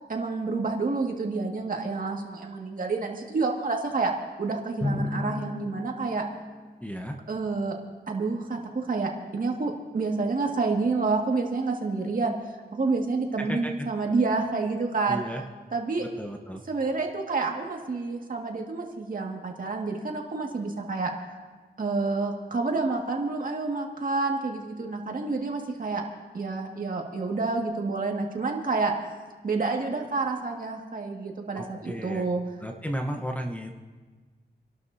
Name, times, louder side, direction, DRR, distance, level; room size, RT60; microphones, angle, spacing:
voice 1, 0.1-4.1 4.4-6.2 7.3-7.8 8.1-12.3 12.7-15.2 15.7-16.1 16.7-21.1 21.8-26.0 26.3-28.9 29.4-32.4, right 3 dB, 50° right, 1 dB, 2.0 m, -28 dB
Drum, 4.8-7.5, left 2 dB, 25° left, 5.1 m, -34 dB
voice 2, 6.8-7.2 13.4-13.9 15.1-15.4 16.0-16.6 31.5-32.3 32.6-33.8, equal, 10° left, 2 dB, 1.0 m, -34 dB
29.5 x 12.0 x 2.7 m, 1.4 s
wide cardioid pair, 105°, 18 cm